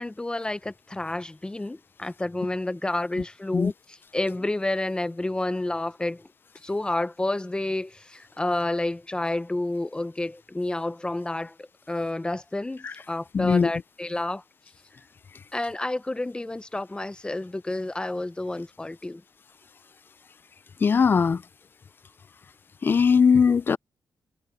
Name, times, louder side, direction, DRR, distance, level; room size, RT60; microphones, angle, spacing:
voice 1, 0.0-3.7 4.1-6.3 6.6-14.4 15.5-19.2, left 2 dB, 15° left, 0.7 m, -30 dB
voice 2, 13.3-13.7 20.8-21.4 22.8-23.8, left 6 dB, 30° left, 0.3 m, -20 dB
wide cardioid pair, 140°, 7 cm